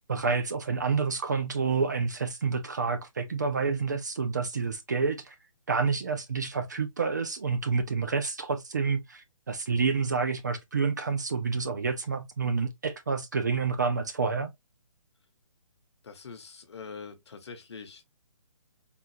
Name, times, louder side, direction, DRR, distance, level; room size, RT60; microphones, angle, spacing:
voice 1, 0.1-5.4 5.7-14.5, right 5 dB, 35° right, 0.4 m, -29 dB
voice 2, 16.0-18.0, left 5 dB, 55° left, 0.8 m, -44 dB
3.7 x 2.3 x 2.6 m
hypercardioid pair, 175°, 17 cm